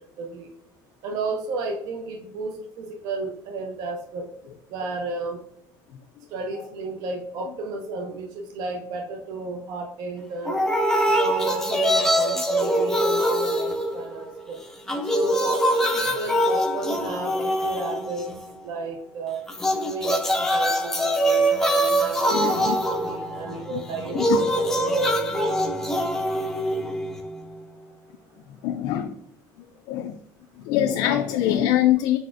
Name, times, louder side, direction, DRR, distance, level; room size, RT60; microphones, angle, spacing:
voice 1, 0.2-0.5 1.0-4.3 4.7-5.4 6.3-10.6 11.2-14.6 15.1-18.3 18.6-19.4 19.8-25.3, right 3 dB, 60° right, 2 dB, 0.6 m, -33 dB
sound 1, 10.5-14.4 14.7-18.5 19.5-27.5, equal, 5° left, 0.5 m, -24 dB
voice 2, 22.3-22.8 23.7-23.8 24.1-24.4 28.6-29.1 29.9-30.2 30.6-32.2, left 12 dB, 75° left, 6 dB, 0.4 m, -23 dB
4.5 x 4.1 x 2.5 m, 0.76 s
cardioid pair, 180°, 7 cm